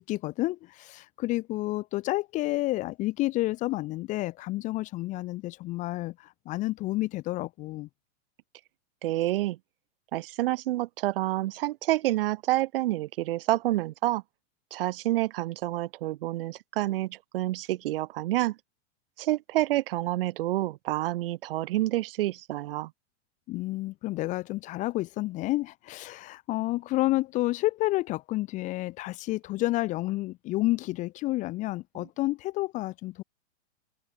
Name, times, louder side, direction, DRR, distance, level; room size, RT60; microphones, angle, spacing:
voice 1, 0.0-7.9 23.5-33.2, left 18 dB, 20° left, 0.9 m, -30 dB
voice 2, 9.0-9.6 10.1-14.2 14.7-18.6 19.2-22.9, right 16 dB, 50° right, 1.4 m, -28 dB
supercardioid pair, 160°, 37 cm